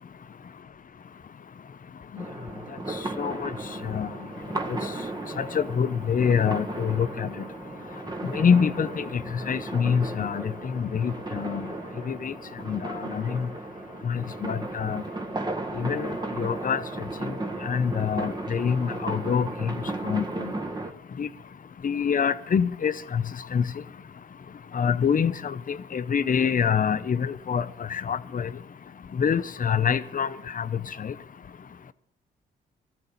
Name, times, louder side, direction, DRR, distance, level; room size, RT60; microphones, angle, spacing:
sound 1, 2.2-20.9, right 2 dB, 20° right, 1.6 m, -35 dB
voice 1, 3.2-3.5 3.8-4.1 4.7-4.8 5.4-7.3 8.3-9.2 9.5-11.7 12.1-12.3 12.7-13.5 14.0-15.0 15.7-16.8 17.2-17.3 17.6-19.7 20.0-20.5 21.2-21.3 21.8-23.2 23.5-23.6 24.7-28.5 29.2-30.3 30.5-31.1, left 7 dB, 45° left, 0.8 m, -26 dB
18.0 x 13.5 x 4.1 m
supercardioid pair, 50°, 19 cm